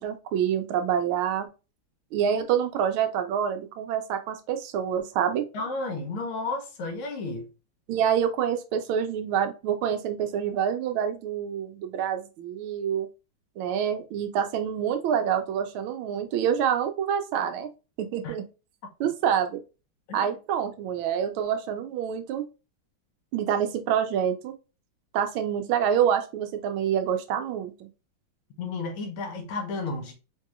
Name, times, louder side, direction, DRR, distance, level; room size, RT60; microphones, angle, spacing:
voice 1, 0.0-1.5 2.1-5.4 7.9-13.1 13.6-17.7 18.0-18.4 19.0-19.6 20.1-22.4 23.3-24.5 25.1-27.9, right 8 dB, 85° right, 1.4 m, -27 dB
voice 2, 5.5-7.5 18.2-18.3 20.1-20.4 28.6-30.1, left 3 dB, 85° left, 1.7 m, -32 dB
4.7 x 2.7 x 2.4 m
omnidirectional pair, 2.3 m